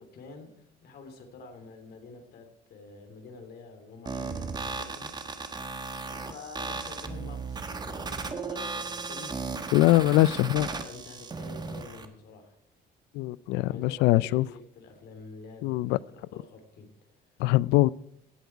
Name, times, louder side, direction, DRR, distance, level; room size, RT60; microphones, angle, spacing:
voice 1, 0.0-5.1 6.0-12.5 13.7-16.9, left 4 dB, 70° left, 5 dB, 3.0 m, -48 dB
sound 1, 4.1-12.1, right 4 dB, 25° right, 1.2 m, -36 dB
voice 2, 9.7-10.7 13.2-14.4 15.6-16.0 17.4-17.9, left 17 dB, 90° left, 22 dB, 0.4 m, -22 dB
15.5 x 7.9 x 4.6 m, 0.74 s
cardioid pair, 110°, 17 cm